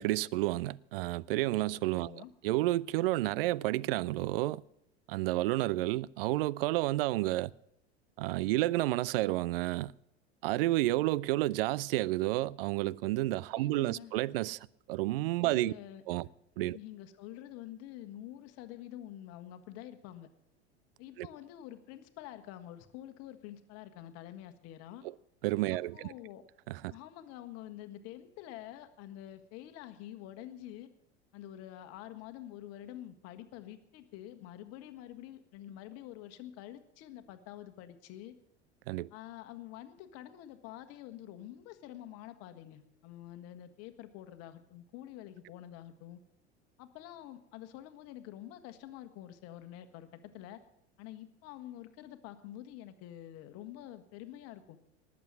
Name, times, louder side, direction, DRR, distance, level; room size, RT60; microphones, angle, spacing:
voice 1, 0.0-4.6 5.1-7.5 8.2-9.9 10.4-14.6 14.9-15.7 16.1-16.3 16.6-16.8 21.2-21.3 25.4-25.9 26.7-26.9 38.9-39.1, right 17 dB, 55° right, 0.5 m, -30 dB
voice 2, 2.0-2.3 13.5-14.1 15.4-16.0 16.7-20.3 21.0-25.1 25.7-26.4 26.9-30.9 31.3-38.4 39.1-46.2 46.8-50.6 51.0-54.8, left 12 dB, 45° left, 1.5 m, -47 dB
19.5 x 7.6 x 7.6 m
figure-of-eight pair, 80°, 34 cm